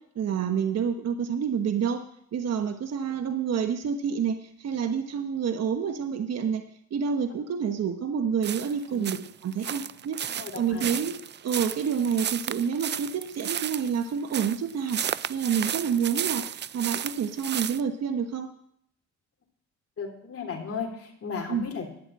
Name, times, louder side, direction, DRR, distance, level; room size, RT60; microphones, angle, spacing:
voice 1, 0.1-2.0 2.3-6.6 6.9-9.2 9.4-11.2 11.4-15.0 15.3-18.5 21.5-21.7, right 7 dB, 55° right, 6 dB, 1.2 m, -28 dB
sound 1, 8.4-17.8, right 9 dB, 35° right, 0.4 m, -33 dB
voice 2, 10.3-10.9 20.0-21.9, left 5 dB, 50° left, 2 dB, 3.3 m, -36 dB
12.0 x 7.4 x 8.9 m, 0.71 s
cardioid pair, 90°, 30 cm